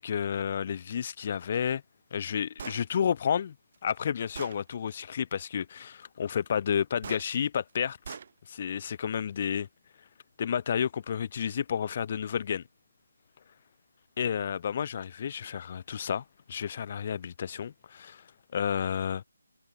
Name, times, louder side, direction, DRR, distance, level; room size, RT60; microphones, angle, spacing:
voice 1, 0.0-1.8 2.1-3.5 3.8-8.2 8.5-9.7 10.4-12.6 14.2-18.2 18.5-19.2, left 8 dB, 40° left, 0.5 m, -31 dB
Gunshot gunfire, 2.6-2.8 3.7-3.8 4.3-4.6 7.0-7.2 8.0-8.3, right 6 dB, 45° right, 6.8 m, -41 dB
figure-of-eight pair, 150°, 0 cm